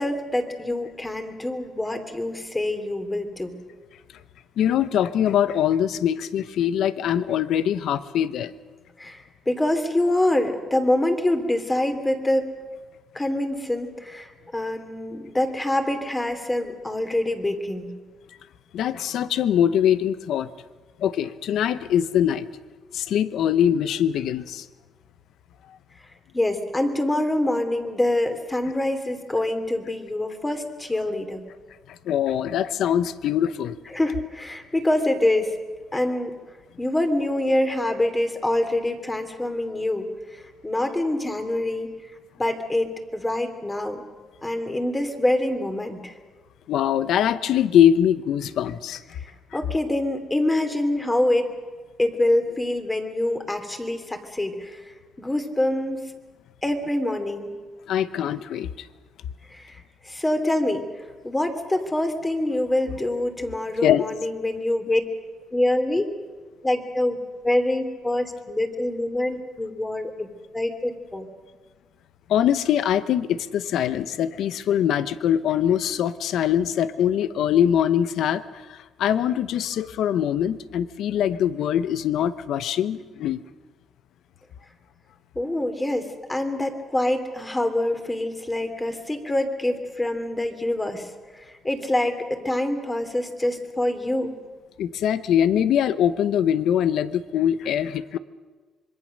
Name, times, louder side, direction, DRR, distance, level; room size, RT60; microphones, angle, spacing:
voice 1, 0.0-3.6 9.0-12.6 13.1-17.9 26.3-31.4 33.9-35.5 35.9-36.4 36.8-40.1 40.3-41.9 42.4-44.0 44.4-46.2 49.5-51.5 52.0-54.8 55.2-56.1 56.6-57.5 59.5-60.8 61.2-65.0 65.5-66.1 66.6-70.3 70.5-71.3 85.3-94.3, left 1 dB, 15° left, 6 dB, 2.9 m, -25 dB
voice 2, 4.6-8.5 18.7-20.5 21.0-22.5 22.9-24.7 31.9-33.8 46.7-49.0 57.9-58.9 63.8-64.0 72.3-83.4 94.8-98.2, left 10 dB, 75° left, 14 dB, 0.8 m, -23 dB
26.0 x 22.0 x 6.5 m, 1.4 s
cardioid pair, 90°, 0 cm